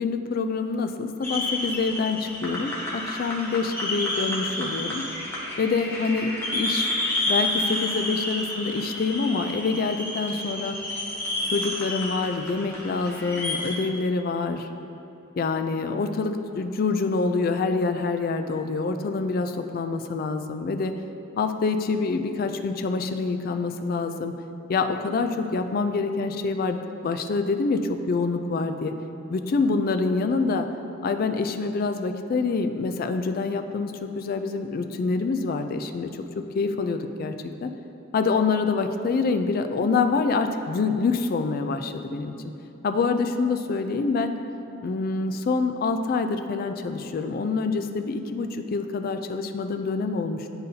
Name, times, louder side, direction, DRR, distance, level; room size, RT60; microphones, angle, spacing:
voice 1, 0.0-5.1 5.6-6.9 7.3-10.8 11.5-14.7 15.4-20.9 21.4-24.3 24.7-28.9 29.3-30.7 31.0-36.1 36.4-37.4 37.6-37.7 38.1-42.3 42.8-44.3 44.8-50.5, left 4 dB, 45° left, 7 dB, 0.3 m, -26 dB
sound 1, 1.2-13.7, left 1 dB, 10° left, 0.9 m, -30 dB
10.0 x 4.0 x 2.7 m, 2.9 s
head